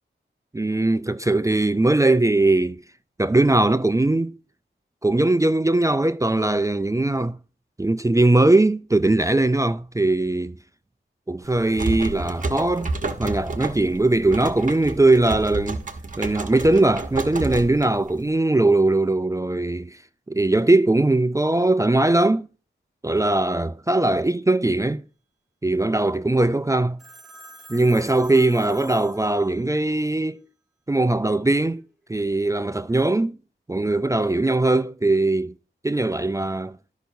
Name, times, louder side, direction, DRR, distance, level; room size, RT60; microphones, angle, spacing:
voice 1, 0.5-2.8 3.2-4.3 5.0-7.4 7.8-10.6 11.3-12.9 13.2-15.8 16.2-20.0 20.3-22.5 23.0-25.0 25.6-27.0 27.7-30.4 30.9-31.8 32.1-33.4 33.7-35.5 35.8-36.8, right 2 dB, 15° right, 0.4 m, -20 dB
sound 1, 11.4-18.3, right 3 dB, 40° right, 1.0 m, -31 dB
Telephone, 27.0-29.8, right 1 dB, ahead, 3.2 m, -46 dB
13.0 x 5.6 x 2.7 m
wide cardioid pair, 65°, 20 cm